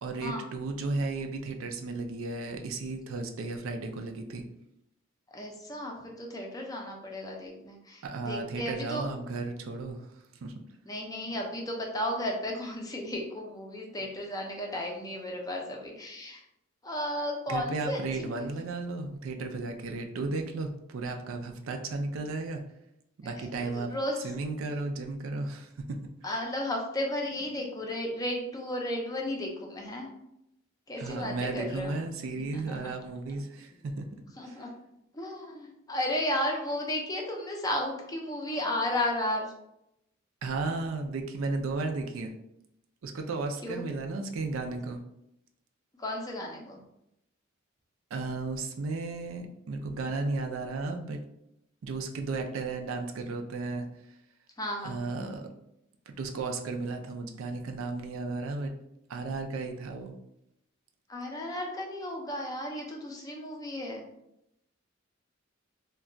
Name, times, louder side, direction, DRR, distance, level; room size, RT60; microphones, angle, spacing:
voice 1, 0.0-4.4 8.0-10.0 10.4-10.5 17.5-22.6 23.2-23.9 24.2-26.4 31.0-34.1 34.5-34.6 40.4-42.3 43.0-45.0 48.1-51.2 51.8-53.9 54.8-55.5 56.2-58.7 59.1-60.1, right 3 dB, 75° right, 4 dB, 0.4 m, -34 dB
voice 2, 5.3-9.1 10.9-16.4 16.8-18.5 23.2-24.2 26.2-30.1 30.9-31.9 32.5-32.9 33.7-33.8 34.4-34.7 35.1-39.5 43.6-43.8 46.0-46.8 54.6-55.0 61.1-64.0, left 1 dB, 15° left, 1 dB, 0.4 m, -34 dB
2.3 x 2.2 x 3.7 m, 0.82 s
head